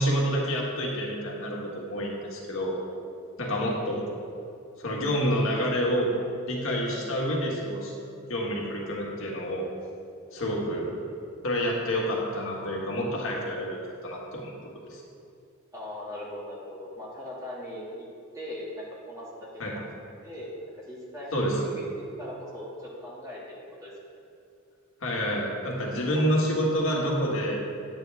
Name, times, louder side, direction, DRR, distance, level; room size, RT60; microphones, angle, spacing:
voice 1, 0.0-2.8 3.4-4.1 4.8-6.1 6.5-7.9 8.3-9.7 10.3-10.9 11.4-14.5 14.9-15.0 19.6-19.8 21.3-21.7 25.0-27.7, equal, 70° left, -2 dB, 1.7 m, -28 dB
voice 2, 3.4-3.9 6.9-7.1 10.6-11.0 15.7-18.1 18.3-19.8 20.2-20.5 20.8-21.5 21.7-23.6 23.8-23.9 26.1-26.4, left 1 dB, 15° right, -7 dB, 2.2 m, -40 dB
10.0 x 8.8 x 3.5 m, 2.5 s
head